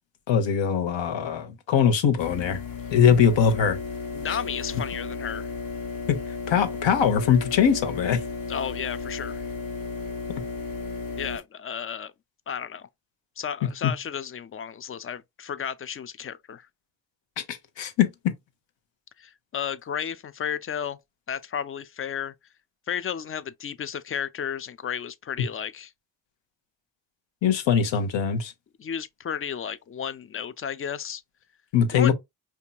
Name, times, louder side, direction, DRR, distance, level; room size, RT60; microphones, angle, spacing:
voice 1, 0.3-2.6 2.9-3.8 4.3-4.4 6.1-6.2 6.5-8.2 13.8-13.9 17.4-18.3 27.4-28.5 31.7-32.1, left 7 dB, 65° left, 0.9 m, -22 dB
sound 1, 2.2-11.4, left 4 dB, 45° left, 1.2 m, -34 dB
voice 2, 4.1-5.5 8.5-9.4 11.2-12.1 12.5-12.9 13.4-16.7 19.2-21.0 21.3-22.3 22.9-25.9 28.8-31.2 31.9-32.1, left 8 dB, 30° left, 0.4 m, -33 dB
4.3 x 2.8 x 2.2 m
supercardioid pair, 50°, 48 cm